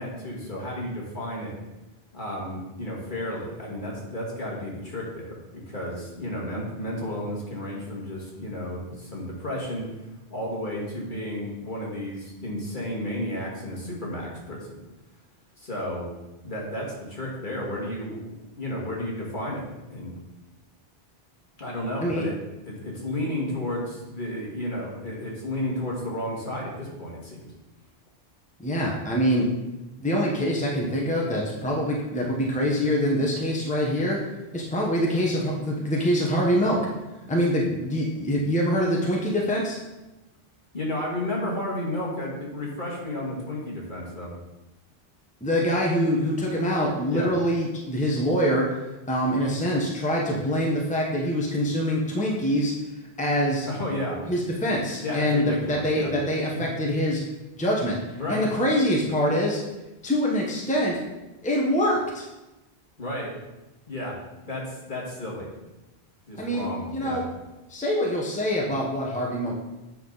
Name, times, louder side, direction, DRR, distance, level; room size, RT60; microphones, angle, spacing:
voice 1, 0.0-1.5 2.1-9.9 10.3-14.8 15.6-16.1 16.4-19.6 19.9-20.2 21.6-22.3 22.6-27.5 40.7-44.3 47.1-47.3 53.7-54.2 55.0-56.1 56.5-56.6 58.2-58.5 63.0-63.3 63.9-64.2 64.5-65.5 66.3-67.2, left 1 dB, 50° left, -4 dB, 2.2 m, -32 dB
voice 2, 28.6-29.5 30.0-34.2 34.5-36.8 37.3-39.8 45.4-48.8 49.1-52.7 53.2-53.7 54.3-57.2 57.6-58.0 58.3-59.6 60.0-61.0 61.4-62.2 66.4-67.2 67.7-69.6, equal, 5° left, -2 dB, 1.0 m, -24 dB
8.5 x 5.8 x 4.0 m, 1.0 s
omnidirectional pair, 1.1 m